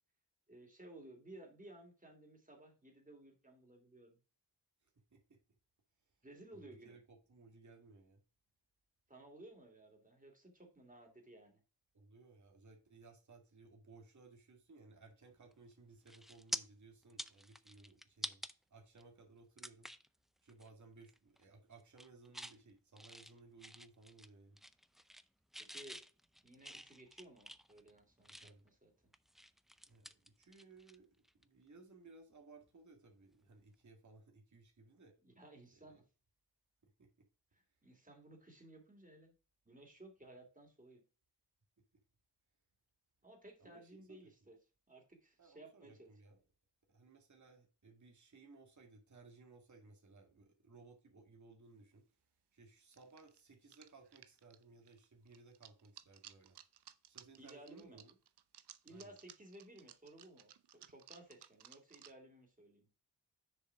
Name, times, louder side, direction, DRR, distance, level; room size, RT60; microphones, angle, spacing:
voice 1, 0.5-4.2 6.2-7.0 9.1-11.6 25.6-26.0 26.4-29.1 35.2-36.0 37.5-39.3 39.6-41.0 43.2-44.6 44.9-46.1 57.4-58.1 58.8-62.9, right 1 dB, 20° right, 3.0 m, -57 dB
voice 2, 4.8-5.4 6.0-6.2 6.5-8.2 11.9-18.4 18.7-19.9 20.4-24.6 28.3-28.7 29.9-35.2 35.7-36.0 36.8-37.3 37.7-37.8 43.6-44.3 45.4-46.4 46.9-52.0 52.5-56.6 57.1-58.2 58.9-59.1, right 3 dB, 45° right, 2.0 m, -61 dB
sound 1, 15.5-15.7 16.1-16.6 17.0-18.5 19.0-19.1 19.6-20.1 20.5-20.7 21.0-21.4 21.8-22.6 23.0-24.3 24.6-25.3 25.5-28.7 29.1-31.0 31.2-31.4 33.3-33.5, equal, ahead, 0.5 m, -48 dB
sound 2, 51.8-51.9 52.9-62.1, right 10 dB, 70° right, 0.7 m, -59 dB
6.8 x 4.9 x 4.7 m
cardioid pair, 70°, 42 cm